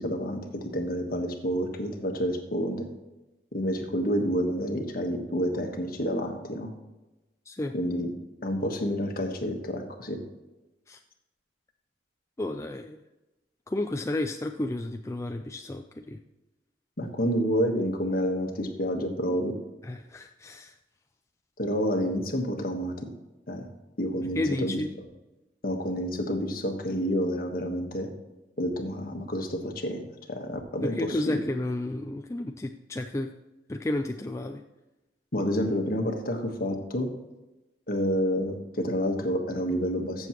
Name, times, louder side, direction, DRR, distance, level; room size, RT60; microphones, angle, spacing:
voice 1, 0.0-2.9 3.5-6.7 7.7-8.1 8.4-10.2 17.0-19.6 21.6-22.9 23.5-23.6 24.0-24.8 25.6-28.1 28.6-30.0 30.3-31.4 35.3-37.1 37.9-40.3, equal, 55° left, 4 dB, 1.4 m, -29 dB
voice 2, 12.4-13.0 13.7-16.2 19.8-20.7 24.4-24.9 30.8-33.3 33.7-34.6, left 1 dB, 15° left, 4 dB, 0.4 m, -32 dB
14.5 x 7.0 x 3.0 m, 1.0 s
head